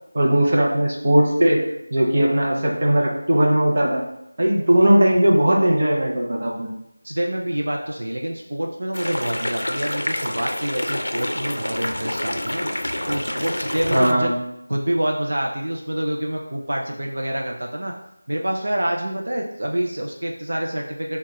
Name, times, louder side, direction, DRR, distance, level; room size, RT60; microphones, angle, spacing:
voice 1, 0.1-1.6 1.9-4.0 4.4-6.7 13.9-14.4, right 1 dB, 35° right, -2 dB, 0.8 m, -18 dB
voice 2, 7.0-12.7 13.1-14.3 14.7-17.9 18.3-21.2, right 1 dB, 65° right, 0 dB, 0.5 m, -27 dB
sound 1, 8.9-14.1, left 1 dB, 85° left, 0.4 m, -27 dB
4.5 x 2.3 x 3.0 m, 0.84 s
figure-of-eight pair, 175°, 0 cm